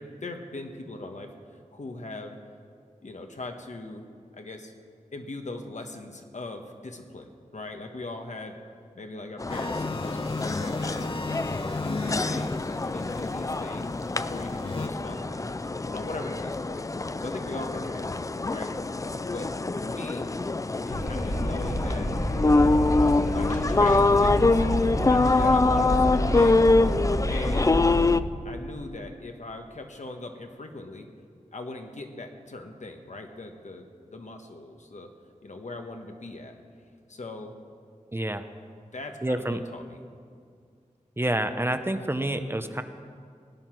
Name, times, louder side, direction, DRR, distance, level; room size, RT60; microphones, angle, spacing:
voice 1, 0.0-1.3 1.7-2.4 3.0-4.1 4.3-4.7 5.1-8.6 8.9-11.5 11.8-16.9 17.2-18.7 19.3-20.3 20.8-22.1 23.3-23.5 23.8-24.6 25.1-26.8 27.3-27.8 28.4-31.1 31.5-33.9 34.1-35.1 35.4-36.6 37.1-37.6 38.9-40.0, left 2 dB, 65° left, 4 dB, 1.4 m, -40 dB
sound 1, 9.4-28.2, left 3 dB, 25° left, 0.4 m, -25 dB
sound 2, 9.5-14.9, left 3 dB, 45° left, 0.7 m, -35 dB
Wind, 20.9-28.2, equal, 80° left, 2.2 m, -28 dB
voice 2, 38.1-38.5 39.2-39.6 41.2-42.8, right 1 dB, 20° right, 8 dB, 0.7 m, -28 dB
18.5 x 9.8 x 6.1 m, 2.2 s
wide cardioid pair, 75°, 13 cm